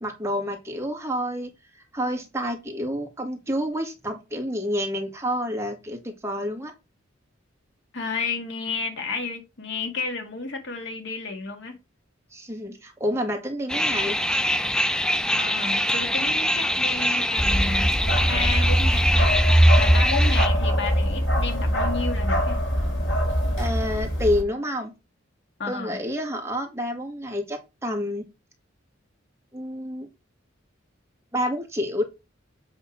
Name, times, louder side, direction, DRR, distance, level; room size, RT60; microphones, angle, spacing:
voice 1, 0.0-6.7 12.3-14.2 23.6-24.9 25.7-28.3 29.5-30.1 31.3-32.0, equal, 15° right, 1.8 m, -29 dB
voice 2, 7.9-11.8 15.3-17.9 18.3-19.3 19.8-22.6 25.6-26.0, left 4 dB, 60° left, 1.8 m, -32 dB
sound 1, 13.7-20.5, left 1 dB, 5° left, 0.4 m, -24 dB
Bark, 17.4-24.4, equal, 85° left, 3.1 m, -21 dB
8.1 x 3.5 x 5.9 m
head